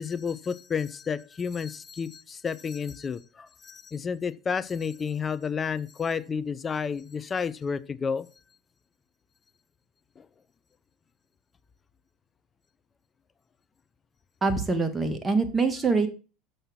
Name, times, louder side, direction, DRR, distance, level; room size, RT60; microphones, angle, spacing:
voice 1, 0.0-8.3 10.2-10.3, left 6 dB, 25° left, 0.5 m, -31 dB
voice 2, 14.4-16.1, right 4 dB, 15° right, 1.7 m, -24 dB
6.6 x 5.7 x 6.2 m
hypercardioid pair, 85°, 0 cm